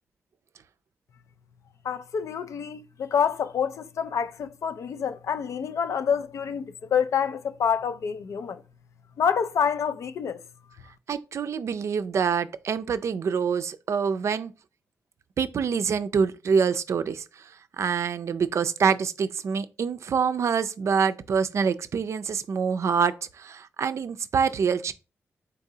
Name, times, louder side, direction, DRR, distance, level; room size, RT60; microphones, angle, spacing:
voice 1, 1.8-8.6 9.2-10.4, left 7 dB, 75° left, 0.3 m, -27 dB
voice 2, 11.1-14.5 15.4-17.4 17.8-24.9, right 6 dB, 65° right, 0.4 m, -26 dB
3.9 x 3.7 x 2.7 m
cardioid pair, 65°, 5 cm